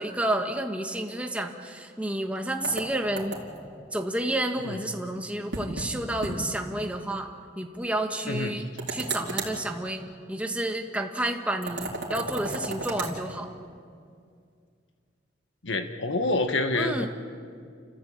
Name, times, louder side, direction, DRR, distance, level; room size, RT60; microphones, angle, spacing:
voice 1, 0.0-3.4 3.9-7.3 7.6-10.0 10.3-13.5 16.8-17.1, right 1 dB, 5° right, 3 dB, 1.5 m, -30 dB
sound 1, 2.6-3.7 5.5-5.9 6.2-6.4 6.7-6.8 8.8-9.6 11.6-13.1, right 3 dB, 70° right, 4.2 m, -34 dB
voice 2, 8.3-8.6 15.6-17.1, left 2 dB, 75° left, 7 dB, 1.5 m, -27 dB
30.0 x 15.0 x 8.8 m, 2.2 s
head